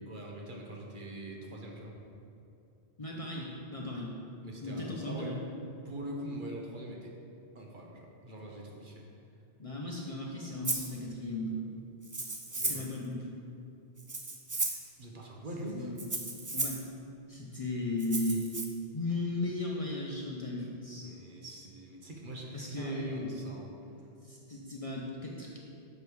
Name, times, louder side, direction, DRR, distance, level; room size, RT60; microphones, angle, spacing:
voice 1, 0.1-1.9 4.4-5.4 5.8-7.1 7.5-9.0 12.6-12.9 15.0-15.9 21.0-23.7, right 1 dB, 50° right, -1 dB, 1.0 m, -43 dB
voice 2, 3.0-4.1 4.6-5.4 9.6-11.7 12.5-13.3 15.7-16.1 16.5-16.8 17.3-18.5 18.9-21.1 22.5-23.3 24.2-25.6, left 2 dB, 35° left, -3 dB, 0.7 m, -36 dB
Rattle (instrument), 10.6-10.9 12.0-12.9 14.0-14.9 16.0-16.8 18.0-18.6, right 3 dB, 25° right, 0.4 m, -34 dB
6.8 x 5.1 x 4.7 m, 2.7 s
omnidirectional pair, 1.1 m